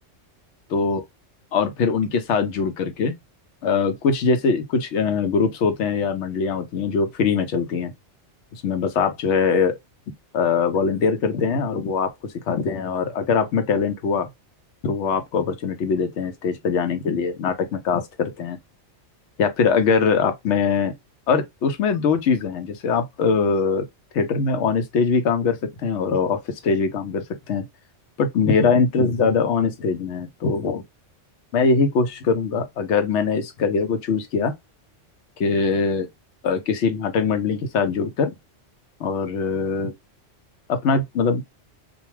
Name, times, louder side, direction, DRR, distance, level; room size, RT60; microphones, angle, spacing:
voice 1, 0.7-1.0 1.5-3.1 3.6-7.9 8.5-9.8 10.3-14.3 14.8-18.6 19.4-20.9 21.3-23.8 24.1-27.7 28.2-30.8 31.5-34.5 35.4-36.1 36.4-38.3 39.0-39.9 40.7-41.4, left 5 dB, 75° left, 0.9 m, -22 dB
2.3 x 2.2 x 3.0 m
omnidirectional pair, 1.2 m